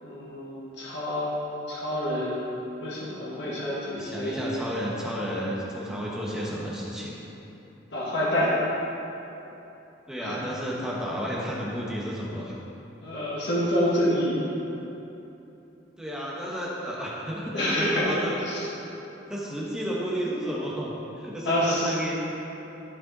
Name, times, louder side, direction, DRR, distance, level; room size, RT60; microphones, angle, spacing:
voice 1, 0.0-2.5 2.8-4.6 7.9-8.5 10.2-10.4 13.0-14.4 17.5-18.0 18.5-18.6 21.4-22.0, left 1 dB, 65° left, -7 dB, 1.7 m, -27 dB
voice 2, 3.9-7.1 10.1-12.5 16.0-18.6 19.3-22.1, equal, 5° right, -5 dB, 1.2 m, -32 dB
11.5 x 5.3 x 4.1 m, 3.0 s
head